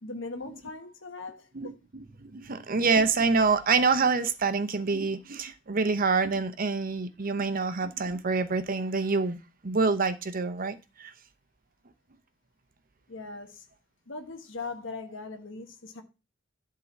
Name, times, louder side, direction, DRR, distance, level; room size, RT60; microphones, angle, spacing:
voice 1, 0.0-1.7 13.1-13.6 14.1-16.0, left 3 dB, 70° left, 1.3 m, -40 dB
voice 2, 1.5-9.4 9.6-11.1, right 4 dB, 45° right, 0.8 m, -26 dB
11.5 x 3.8 x 7.0 m
head